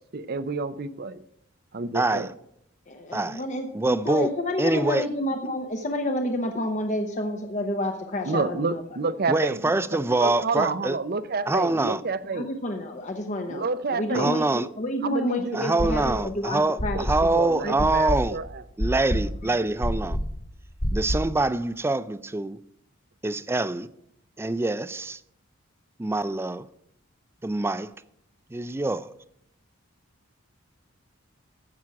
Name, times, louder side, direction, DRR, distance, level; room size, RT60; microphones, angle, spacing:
voice 1, 0.1-1.2 1.7-2.3 8.3-9.8 10.2-12.5 13.5-14.4 15.0-15.6 16.9-18.4, right 4 dB, 50° right, 0.6 m, -29 dB
voice 2, 1.9-2.3 3.1-3.4 3.7-4.3 4.6-5.1 9.3-11.0 11.5-12.0 14.1-14.7 15.5-18.4 18.8-20.2 20.9-22.6 23.2-23.9 24.4-25.2 26.0-26.7 27.4-27.9 28.5-29.1, right 2 dB, 10° right, 0.4 m, -25 dB
voice 3, 2.9-8.8 12.3-17.0 17.6-17.7, left 1 dB, 35° left, 0.9 m, -29 dB
sound 1, 15.8-16.4 16.8-21.4, equal, 65° left, 3.0 m, -28 dB
15.0 x 6.1 x 5.9 m
head